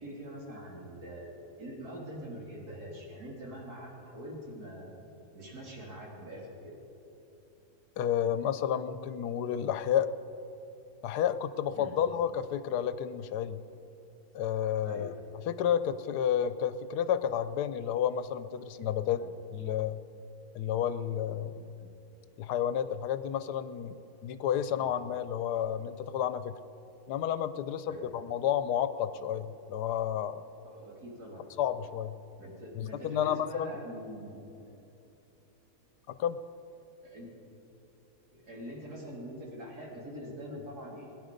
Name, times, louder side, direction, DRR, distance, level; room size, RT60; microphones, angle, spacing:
voice 1, 0.0-4.9 5.3-6.7 11.7-11.9 14.8-15.1 19.2-19.3 21.8-21.9 24.8-24.9 27.8-28.1 30.6-31.5 32.4-34.5 37.0-37.3 38.3-41.1, equal, 70° right, -3 dB, 3.5 m, -44 dB
voice 2, 8.0-10.1 11.0-13.6 14.3-15.1 15.5-19.2 19.5-20.0 20.5-21.7 22.4-23.9 24.2-26.5 27.1-30.4 31.6-32.1 32.8-33.7 36.2-36.4, left 9 dB, 90° left, 12 dB, 1.2 m, -31 dB
21.0 x 10.5 x 5.2 m, 2.9 s
omnidirectional pair, 1.7 m